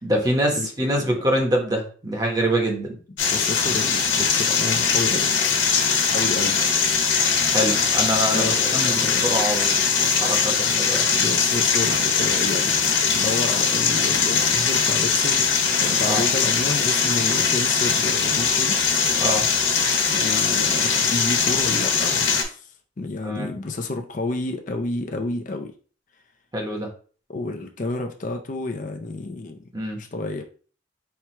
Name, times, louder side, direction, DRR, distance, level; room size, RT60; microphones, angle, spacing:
voice 1, 0.0-3.0 7.5-11.2 16.1-16.2 19.2-19.5 23.2-23.5 26.5-26.9 29.7-30.0, right 1 dB, 20° right, 1 dB, 1.0 m, -25 dB
voice 2, 0.6-1.2 3.3-5.3 6.1-6.6 8.3-9.4 11.1-12.8 13.1-18.8 20.1-22.7 23.0-25.7 27.3-29.6 30.0-30.4, left 2 dB, 45° left, 4 dB, 0.5 m, -30 dB
sound 1, 3.2-22.4, left 5 dB, 80° left, 1.3 m, -21 dB
4.5 x 2.3 x 4.3 m, 0.40 s
head